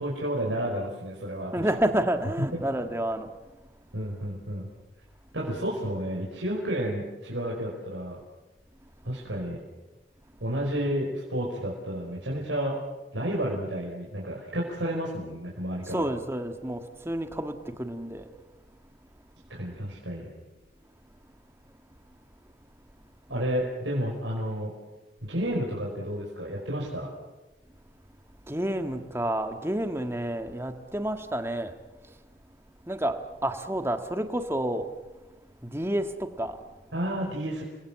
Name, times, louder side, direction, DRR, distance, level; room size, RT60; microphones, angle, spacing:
voice 1, 0.0-1.7 2.5-2.6 3.9-4.7 5.3-8.2 9.0-9.6 10.4-12.8 13.1-16.0 19.5-20.3 23.3-24.7 25.3-27.1 36.9-37.6, equal, 85° right, -3 dB, 5.3 m, -31 dB
voice 2, 1.5-3.3 15.9-18.3 28.5-31.7 32.0-32.1 32.8-33.2 33.4-34.9 35.6-36.6, right 1 dB, 15° right, 6 dB, 1.6 m, -29 dB
29.5 x 21.5 x 7.5 m, 1.1 s
head